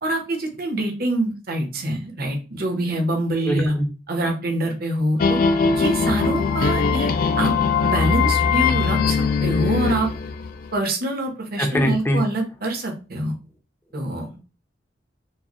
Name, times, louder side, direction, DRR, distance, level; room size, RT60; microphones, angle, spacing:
voice 1, 0.0-3.7 4.1-5.4 5.7-7.5 7.8-10.1 10.7-13.4 13.9-14.4, right 1 dB, 55° right, 3 dB, 1.0 m, -25 dB
voice 2, 3.5-3.9 11.6-12.2, equal, 10° left, 3 dB, 0.6 m, -22 dB
sound 1, 5.2-10.8, left 5 dB, 50° left, 0.4 m, -21 dB
4.6 x 2.2 x 2.9 m, 0.32 s
head